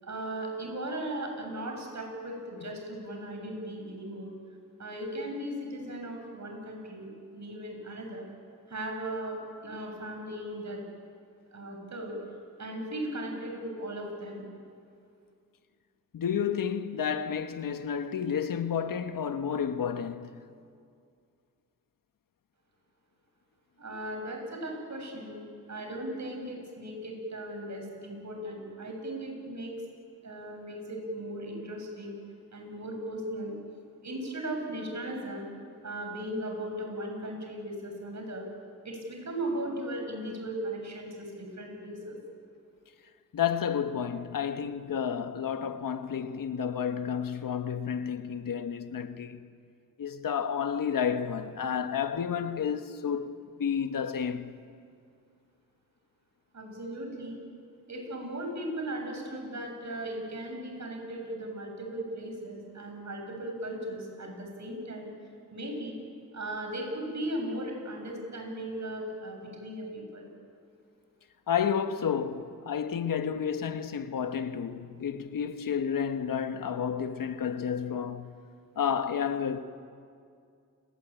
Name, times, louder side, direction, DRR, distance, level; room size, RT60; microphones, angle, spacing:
voice 1, 0.0-4.3 4.8-8.3 8.7-9.4 9.6-10.8 11.5-12.2 12.6-14.4 23.8-29.7 30.2-32.1 32.5-33.5 34.0-35.5 35.8-38.5 38.8-42.2 56.5-57.4 57.9-65.1 65.5-66.0 66.3-70.3, right 1 dB, 60° right, 7.8 m, -37 dB
voice 2, 16.1-20.3 43.3-49.4 50.0-54.5 71.5-78.3 78.8-79.6, left 7 dB, 90° left, 1.3 m, -31 dB
30.0 x 19.5 x 9.1 m
cardioid pair, 75°, 32 cm